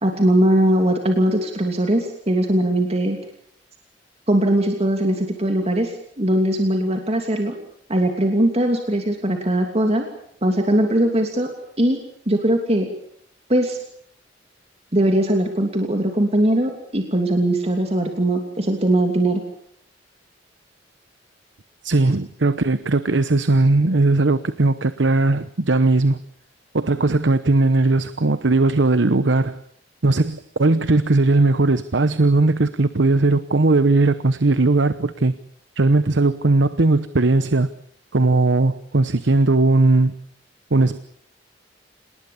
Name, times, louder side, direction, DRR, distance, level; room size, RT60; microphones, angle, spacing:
voice 1, 0.0-3.2 4.3-5.9 6.2-7.5 7.9-10.1 10.4-11.5 11.8-12.0 12.3-12.9 13.5-13.8 14.9-19.4, right 1 dB, 35° right, 2.9 m, -20 dB
voice 2, 21.8-26.2 26.7-29.6 30.0-35.3 35.8-37.7 38.1-40.1 40.7-41.0, right 2 dB, 75° right, 1.0 m, -18 dB
28.0 x 20.0 x 7.1 m
head